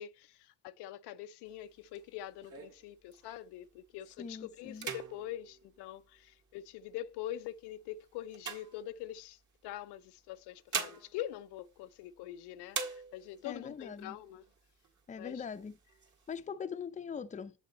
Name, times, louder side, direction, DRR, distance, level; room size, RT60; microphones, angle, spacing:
voice 1, 0.0-14.4 15.2-15.4, left 12 dB, 80° left, 0.5 m, -44 dB
sound 1, 1.5-3.6 4.1-4.3 4.7-6.6 7.3-9.4 10.3-12.3 12.7-13.5 14.0-14.1 14.4-15.0 15.5-16.4, right 5 dB, 45° right, 1.8 m, -43 dB
voice 2, 4.2-4.9 13.4-14.2 15.1-15.8 16.3-17.5, left 6 dB, 20° left, 0.5 m, -41 dB
7.3 x 5.3 x 4.0 m
cardioid pair, 95°, 40 cm